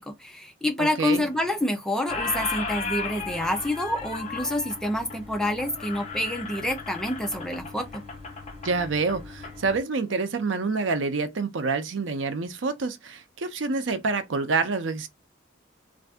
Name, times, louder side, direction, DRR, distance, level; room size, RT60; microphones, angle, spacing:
voice 1, 0.0-8.0, left 1 dB, 5° left, 0.5 m, -28 dB
voice 2, 0.8-1.2 8.6-15.1, right 4 dB, 80° right, 0.6 m, -27 dB
Squeak, 1.1-1.7 1.9-9.5, left 4 dB, 35° left, 0.8 m, -35 dB
sound 1, 2.1-9.8, left 3 dB, 30° right, 1.3 m, -44 dB
2.6 x 2.5 x 3.4 m
head